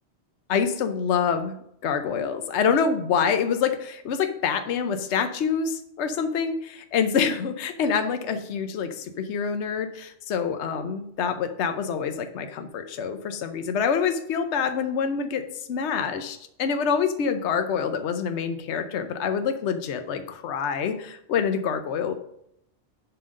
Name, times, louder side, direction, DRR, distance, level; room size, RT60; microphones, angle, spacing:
voice 1, 0.5-1.6 1.8-15.4 15.7-22.1, left 6 dB, 70° left, 8 dB, 1.0 m, -26 dB
11.0 x 3.9 x 6.3 m, 0.74 s
omnidirectional pair, 1.2 m